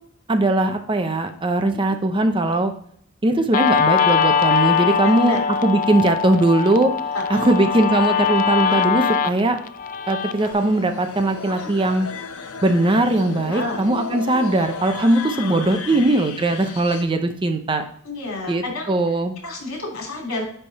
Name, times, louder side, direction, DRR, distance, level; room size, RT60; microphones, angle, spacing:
voice 1, 0.3-2.7 3.2-5.4 5.6-6.9 7.3-9.6 10.1-12.1 12.6-17.8 18.5-19.3, right 2 dB, 25° right, 7 dB, 0.6 m, -20 dB
Guitar, 3.5-10.5, left 7 dB, 40° left, 0.4 m, -21 dB
voice 2, 5.0-5.4 7.1-7.8 11.5-11.7 13.5-13.8 15.4-16.0 18.0-20.4, left 2 dB, 70° left, -1 dB, 3.0 m, -31 dB
sound 1, 10.4-17.0, left 5 dB, 90° left, 0.8 m, -34 dB
10.0 x 3.5 x 4.1 m, 0.65 s
head